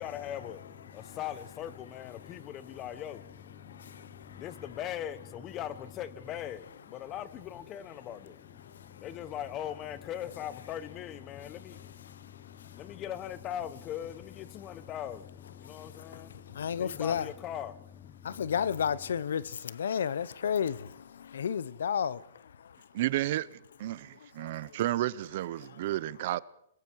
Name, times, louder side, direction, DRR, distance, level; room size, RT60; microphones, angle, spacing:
voice 1, 0.0-19.1, left 10 dB, 25° left, 1.2 m, -41 dB
voice 2, 3.6-4.4 8.6-9.0 12.1-12.8 15.6-17.3 18.2-22.9 24.2-24.8 25.6-25.8, left 7 dB, 85° left, 0.9 m, -34 dB
voice 3, 22.9-26.4, right 15 dB, 50° right, 0.8 m, -32 dB
29.0 x 21.5 x 4.8 m
hypercardioid pair, 160°, 0 cm